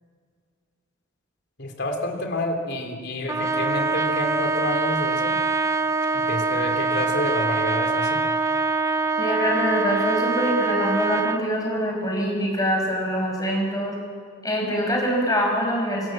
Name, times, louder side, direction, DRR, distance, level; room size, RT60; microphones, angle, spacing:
voice 1, 1.6-5.4 6.1-8.2, left 1 dB, 50° left, 3 dB, 3.3 m, -29 dB
Trumpet, 3.3-11.4, right 3 dB, 15° right, 0.7 m, -24 dB
voice 2, 9.2-14.0 14.4-16.1, equal, 15° left, 0 dB, 5.7 m, -24 dB
26.0 x 25.5 x 7.7 m, 2.1 s
head